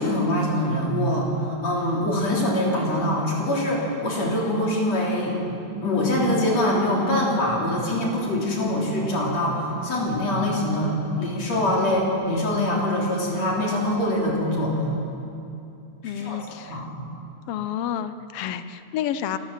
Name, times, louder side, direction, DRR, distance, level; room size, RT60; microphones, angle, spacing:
voice 1, 0.0-5.4 5.8-14.9 16.0-16.4 16.7-16.9, left 1 dB, 60° left, -3 dB, 4.6 m, -24 dB
voice 2, 16.0-16.8 17.5-19.4, left 10 dB, 75° left, 12 dB, 1.4 m, -30 dB
27.0 x 15.0 x 7.5 m, 2.7 s
omnidirectional pair, 3.5 m